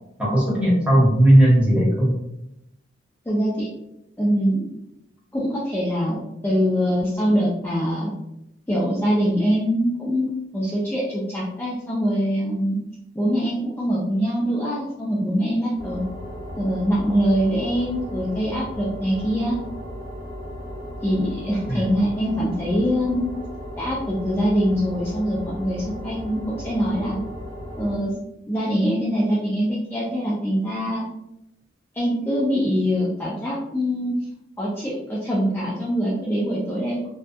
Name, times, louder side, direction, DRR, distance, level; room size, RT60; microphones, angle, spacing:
voice 1, 0.2-2.1 21.7-21.9, right 1 dB, 5° right, -7 dB, 0.9 m, -16 dB
voice 2, 3.3-3.7 4.2-4.6 5.3-8.1 8.7-12.8 13.1-16.0 16.5-19.6 21.0-23.3 23.8-27.2 27.8-28.2 28.5-31.0 31.9-34.2 34.6-37.1, equal, 10° left, -7 dB, 0.4 m, -23 dB
sound 1, 15.8-28.0, equal, 40° left, 0.9 m, -35 dB
2.6 x 2.2 x 2.2 m, 0.85 s
head